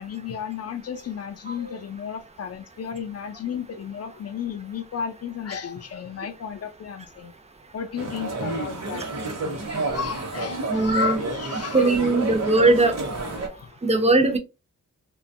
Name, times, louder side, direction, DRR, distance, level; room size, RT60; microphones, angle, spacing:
voice 1, 0.0-7.3 7.7-9.1 9.8-12.1 13.5-13.8, left 7 dB, 50° left, 0.4 m, -34 dB
sound 1, 8.0-13.5, right 2 dB, 55° right, 0.9 m, -30 dB
voice 2, 10.7-11.2 11.7-13.0 13.8-14.4, right 2 dB, 20° right, 0.5 m, -19 dB
2.8 x 2.2 x 2.6 m
wide cardioid pair, 165°, 32 cm